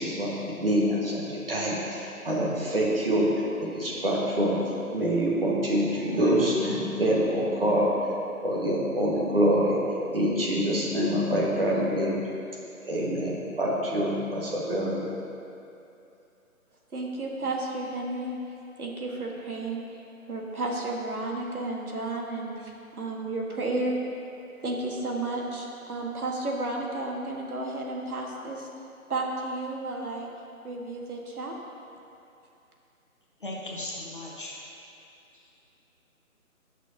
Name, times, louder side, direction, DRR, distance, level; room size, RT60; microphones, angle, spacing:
voice 1, 0.0-8.1 8.4-9.8 10.1-12.2 12.8-15.0, equal, 40° right, -4 dB, 1.6 m, -26 dB
voice 2, 16.9-20.0 20.3-24.0 24.6-28.7 29.1-30.3 30.6-31.6, right 2 dB, 80° right, -1 dB, 1.7 m, -32 dB
voice 3, 33.4-34.6 35.4-35.5, left 1 dB, 35° left, -4 dB, 1.1 m, -37 dB
16.5 x 6.2 x 2.8 m, 2.7 s
hypercardioid pair, 175°, 44 cm